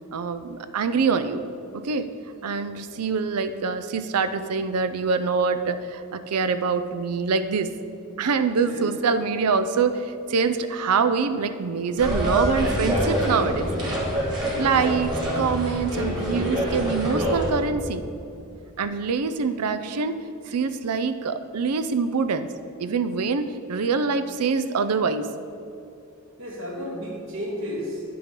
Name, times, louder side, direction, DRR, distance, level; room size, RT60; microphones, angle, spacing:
voice 1, 0.1-1.4 1.7-2.1 2.4-7.7 8.2-13.7 14.6-18.0 18.8-20.1 20.5-22.5 22.8-25.3, right 5 dB, 90° right, 11 dB, 0.5 m, -25 dB
sound 1, 12.0-17.5, equal, 20° right, 1.9 m, -25 dB
voice 2, 26.4-28.0, equal, 60° right, -3 dB, 2.0 m, -33 dB
9.6 x 6.8 x 3.7 m, 2.7 s
head